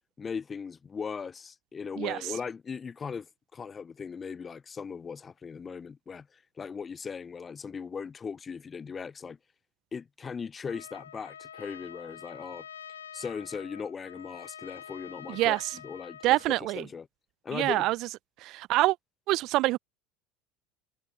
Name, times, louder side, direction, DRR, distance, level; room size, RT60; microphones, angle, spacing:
voice 1, 0.2-3.3 3.5-9.4 9.9-12.7 13.1-17.1 17.4-17.9, left 6 dB, 25° left, 0.5 m, -38 dB
Trumpet, 10.7-16.5, left 8 dB, 85° left, 0.6 m, -46 dB
voice 2, 15.3-15.6 16.2-16.8 17.5-18.0 18.4-19.0 19.3-19.8, right 18 dB, 55° right, 0.5 m, -25 dB
hypercardioid pair, 80°, 0 cm